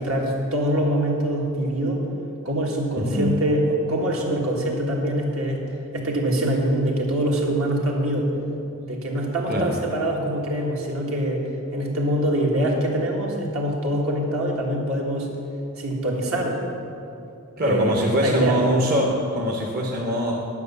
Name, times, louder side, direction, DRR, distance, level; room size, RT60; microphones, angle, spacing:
voice 1, 0.0-2.0 2.4-5.6 5.9-8.3 8.8-11.4 11.7-15.3 15.8-16.6 17.6-17.9 18.2-18.6, right 1 dB, 70° right, -1 dB, 1.7 m, -24 dB
voice 2, 3.0-3.4 9.5-9.8 17.6-20.4, equal, 45° right, -1 dB, 0.9 m, -23 dB
10.5 x 6.2 x 6.9 m, 2.7 s
head